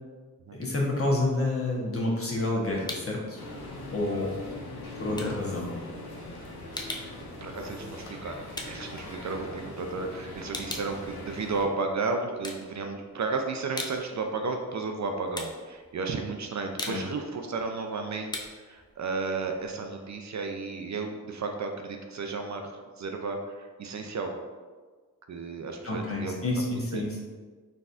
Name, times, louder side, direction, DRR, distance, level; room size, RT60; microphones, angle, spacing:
voice 1, 0.5-3.4 3.9-4.3 5.0-5.7 16.9-17.0 25.8-27.2, left 2 dB, 40° left, -3 dB, 1.0 m, -29 dB
sound 1, 2.8-3.3 3.6-9.8 10.1-11.9 12.3-13.2 13.5-20.2, left 1 dB, 10° left, 0.4 m, -41 dB
sound 2, 3.4-11.7, left 2 dB, 85° left, 0.7 m, -41 dB
voice 2, 7.4-24.3 25.3-26.4 26.9-27.0, right 4 dB, 50° right, 4 dB, 0.4 m, -33 dB
3.9 x 2.6 x 2.4 m, 1.4 s
cardioid pair, 45°, 36 cm